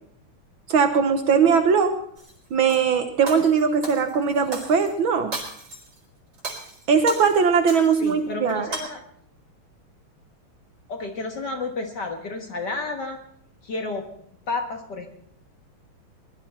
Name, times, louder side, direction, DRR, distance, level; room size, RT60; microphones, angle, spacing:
voice 1, 0.7-1.9 2.5-5.3 6.9-8.8, right 6 dB, 70° right, 7 dB, 1.8 m, -20 dB
Shatter, 2.2-2.8 3.3-4.9 5.3-6.0 6.3-8.1 8.5-8.8, right 3 dB, 85° right, 5.3 m, -36 dB
voice 2, 8.0-9.0 10.9-13.2 13.6-14.0 14.5-15.1, left 3 dB, 55° left, 3 dB, 2.0 m, -31 dB
21.0 x 12.0 x 4.3 m, 0.67 s
omnidirectional pair, 2.4 m